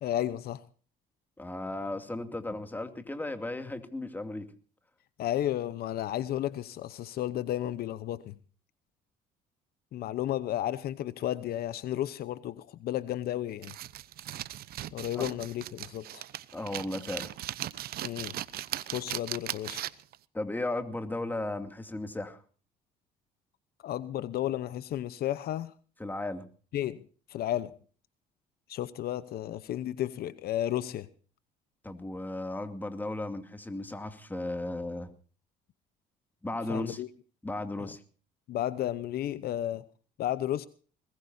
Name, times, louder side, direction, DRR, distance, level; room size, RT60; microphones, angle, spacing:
voice 1, 0.0-0.6 5.2-8.3 9.9-13.8 14.9-16.2 18.0-18.4 18.9-19.8 23.8-25.7 26.7-27.8 28.7-31.1 36.7-37.1 37.8-37.9 38.5-39.8 40.2-40.7, left 12 dB, 65° left, 0.9 m, -33 dB
voice 2, 1.4-4.4 15.1-15.2 16.5-17.3 20.3-22.4 26.0-26.4 31.8-35.1 36.4-37.0 37.4-38.0, left 2 dB, 10° left, 2.5 m, -35 dB
sound 1, 13.6-20.2, right 13 dB, 65° right, 0.9 m, -38 dB
21.5 x 19.5 x 2.7 m
cardioid pair, 110°, 17 cm